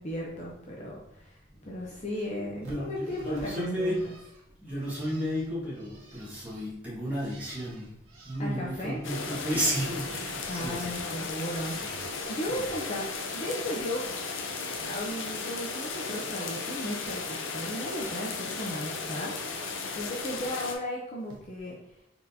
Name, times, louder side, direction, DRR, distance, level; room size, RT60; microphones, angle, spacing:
voice 1, 0.0-4.1 8.4-9.0 10.5-11.9 12.3-14.1 14.6-21.8, left 1 dB, 35° left, -3 dB, 0.6 m, -36 dB
voice 2, 1.5-2.0 2.4-4.0 4.6-7.9 8.2-11.0 11.8-12.0 12.5-12.7, equal, 10° right, -8 dB, 1.6 m, -33 dB
Bird, 2.6-9.4 9.7-12.2 12.5-13.4 13.7-15.1 15.4-16.6 16.9-18.0 18.4-18.8 20.1-20.2 21.2-21.4, right 2 dB, 90° right, 1.1 m, -54 dB
sound 1, 9.0-20.8, left 4 dB, 75° left, 0.7 m, -35 dB
4.3 x 3.8 x 2.7 m, 0.78 s
head